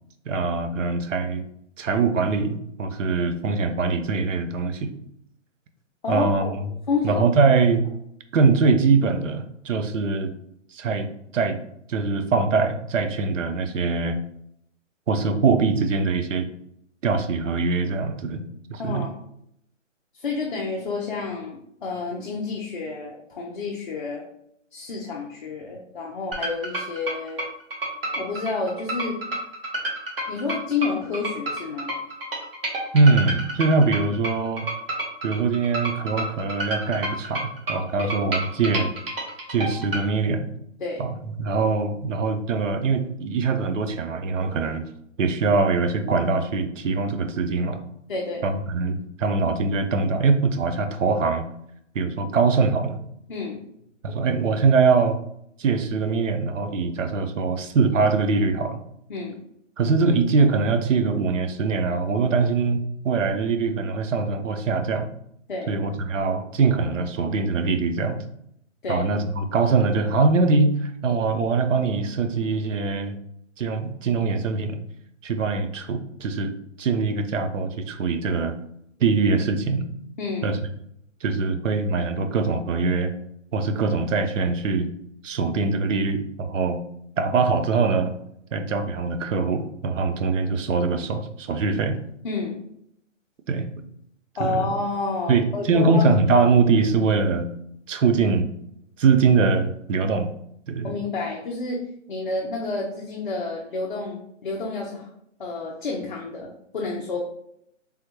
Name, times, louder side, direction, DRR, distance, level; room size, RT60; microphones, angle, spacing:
voice 1, 0.3-1.4 1.8-4.9 6.1-6.7 7.0-7.9 8.3-10.3 10.7-11.6 11.9-14.2 15.1-16.5 17.0-18.4 18.7-19.0 32.9-34.7 35.2-38.9 39.5-40.5 41.0-41.1 41.4-44.8 45.2-47.8 48.4-51.5 51.9-53.0 54.0-55.2 55.6-58.8 59.8-65.1 65.7-68.2 68.9-73.2 73.6-74.8 75.2-76.5 76.8-78.6 79.0-79.8 80.4-80.6 81.2-83.1 83.5-84.9 85.2-86.8 87.2-88.1 88.5-92.0 93.5-93.7 94.4-94.7 95.3-97.5 97.9-98.5 99.0-100.3 100.7-100.9, right 4 dB, 70° right, 8 dB, 0.6 m, -22 dB
voice 2, 6.0-7.2 18.8-19.2 20.1-24.2 24.7-27.5 28.1-29.2 30.3-31.9 38.0-38.1 40.8-41.0 48.1-48.5 53.3-53.6 59.1-59.4 65.5-65.8 68.8-69.0 80.2-80.6 92.2-92.6 94.4-96.1 100.8-101.8 102.1-105.1 105.4-107.2, left 4 dB, 40° left, -2 dB, 0.5 m, -29 dB
sound 1, 26.3-40.0, right 1 dB, 45° right, 0.9 m, -30 dB
3.4 x 2.2 x 3.0 m, 0.74 s
hypercardioid pair, 155°, 39 cm